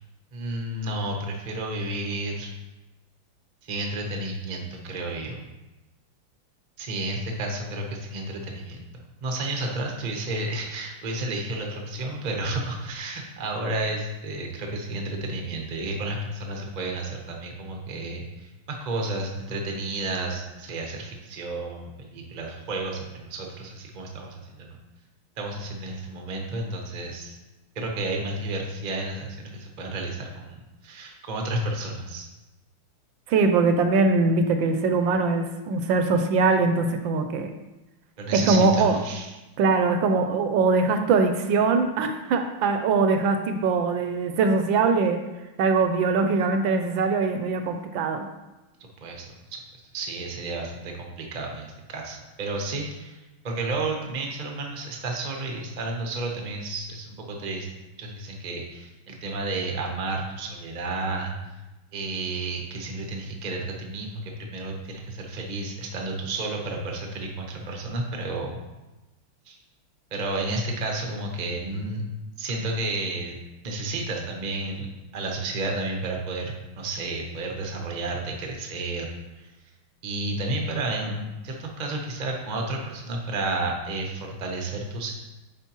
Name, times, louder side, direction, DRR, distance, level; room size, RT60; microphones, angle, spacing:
voice 1, 0.3-2.5 3.7-5.4 6.8-8.8 9.2-24.8 25.4-27.4 27.7-32.3 38.2-39.3 49.0-49.3 49.9-53.2 53.4-57.7 58.0-61.3 61.9-68.6 69.5-69.6 70.1-72.0 72.4-73.4 73.6-74.9 75.1-79.1 79.3-79.5 80.0-85.1, right 2 dB, 45° right, 1 dB, 0.5 m, -31 dB
voice 2, 33.3-37.5 38.5-39.0 39.6-45.2 45.6-48.3, right 4 dB, 75° right, 6 dB, 1.2 m, -22 dB
8.8 x 4.6 x 3.0 m, 1.0 s
omnidirectional pair, 2.3 m